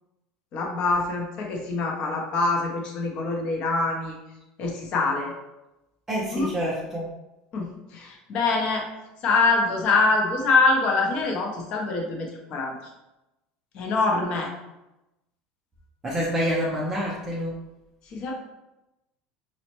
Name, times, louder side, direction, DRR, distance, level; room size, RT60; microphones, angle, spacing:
voice 1, 0.5-4.2 4.6-5.3 6.3-6.5 7.5-8.9 9.2-12.7 13.7-14.5 18.1-18.3, left 3 dB, 35° left, 0 dB, 0.6 m, -24 dB
voice 2, 6.1-7.1 16.0-17.5, equal, 10° right, -5 dB, 0.4 m, -27 dB
5.1 x 2.0 x 2.9 m, 0.96 s
cardioid pair, 180°, 3 cm